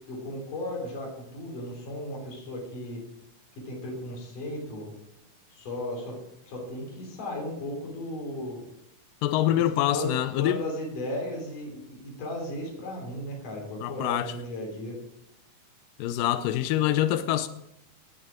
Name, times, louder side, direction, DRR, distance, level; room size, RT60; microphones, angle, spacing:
voice 1, 0.1-3.0 3.6-4.9 5.5-6.2 6.5-8.6 9.9-15.0, left 1 dB, 65° left, 5.0 m, -35 dB
voice 2, 9.2-10.6 13.8-14.3 16.0-17.5, left 13 dB, 85° left, 2.2 m, -25 dB
19.5 x 6.7 x 5.0 m
omnidirectional pair, 3.9 m